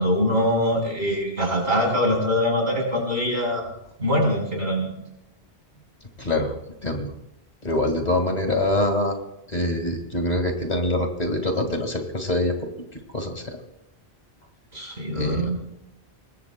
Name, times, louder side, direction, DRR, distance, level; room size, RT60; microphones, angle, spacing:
voice 1, 0.0-3.7 4.0-5.0 14.7-15.6, equal, 80° right, 0 dB, 4.9 m, -23 dB
voice 2, 6.2-6.5 6.8-7.1 7.6-9.2 9.5-12.6 13.1-13.6 15.1-15.5, left 1 dB, 40° left, 4 dB, 2.1 m, -24 dB
24.5 x 19.5 x 2.2 m, 0.83 s
omnidirectional pair, 1.1 m